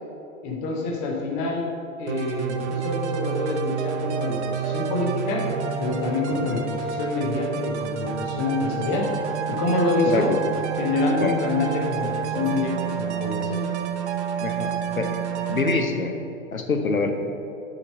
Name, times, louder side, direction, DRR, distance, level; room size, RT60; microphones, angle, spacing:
voice 1, 0.4-1.7 2.0-5.4 5.8-9.1 9.5-10.3 10.8-13.6, left 3 dB, 10° left, 0 dB, 0.3 m, -26 dB
sound 1, 2.1-15.8, right 7 dB, 55° right, 0.8 m, -29 dB
voice 2, 14.4-15.2 15.5-16.1 16.5-17.1, left 4 dB, 85° left, 4 dB, 0.9 m, -25 dB
6.2 x 5.1 x 6.3 m, 2.7 s
figure-of-eight pair, 105°, 40 cm